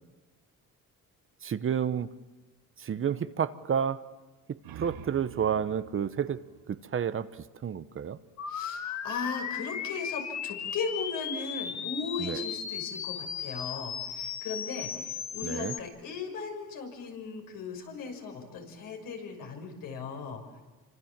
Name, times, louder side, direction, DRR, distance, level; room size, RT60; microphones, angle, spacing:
voice 1, 1.4-2.1 2.8-4.0 4.8-6.4 6.9-7.3 7.6-8.2 12.2-12.4 15.4-15.7, right 8 dB, 35° right, 13 dB, 0.9 m, -30 dB
sound 1, 4.4-7.8, right 10 dB, 85° right, 1.5 m, -49 dB
sound 2, 8.4-15.8, left 8 dB, 50° left, 1.7 m, -36 dB
voice 2, 8.5-20.6, left 5 dB, 75° left, 3 dB, 6.3 m, -37 dB
28.0 x 25.5 x 7.5 m, 1.2 s
cardioid pair, 125°, 34 cm